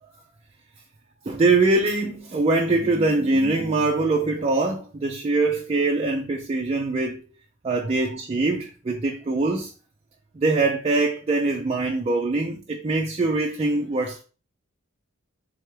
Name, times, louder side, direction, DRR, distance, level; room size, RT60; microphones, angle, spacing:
voice 1, 1.3-7.2 7.6-9.7 10.4-14.2, right 3 dB, 30° right, 0.4 m, -23 dB
3.7 x 3.3 x 3.2 m
head